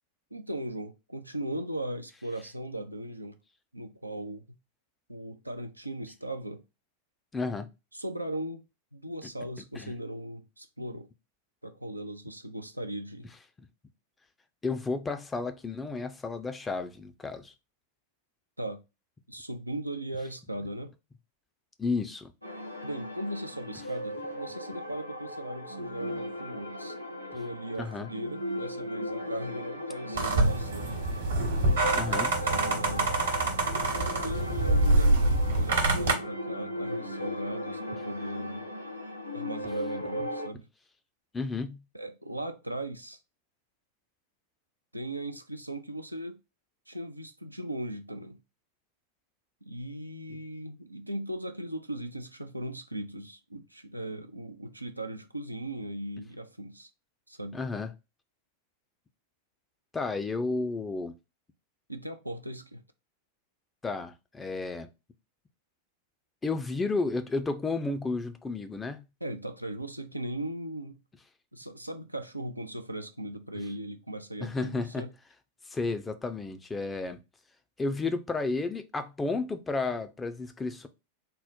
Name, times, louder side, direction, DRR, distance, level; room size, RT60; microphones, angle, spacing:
voice 1, 0.3-3.4 3.7-4.4 5.1-6.6 7.9-8.6 8.9-11.1 11.6-13.3 18.6-18.8 19.3-20.9 22.8-27.0 27.3-31.0 32.4-33.1 34.2-38.7 39.3-40.7 41.9-43.2 44.9-46.4 46.9-48.4 49.6-56.9 57.3-57.6 61.9-62.8 69.2-71.0 71.5-75.1, right 1 dB, 85° right, 0.4 m, -38 dB
voice 2, 7.3-7.7 9.7-9.9 14.6-17.5 21.8-22.3 27.8-28.1 31.9-32.3 41.3-41.8 57.5-57.9 59.9-61.1 63.8-64.9 66.4-69.0 74.4-75.1 75.7-77.2 77.8-80.9, left 3 dB, 15° left, 0.5 m, -32 dB
sound 1, 22.4-40.5, left 1 dB, 85° left, 0.6 m, -37 dB
sound 2, 30.1-36.1, right 2 dB, 65° right, 1.0 m, -25 dB
3.7 x 2.1 x 4.2 m
figure-of-eight pair, 90°, 0 cm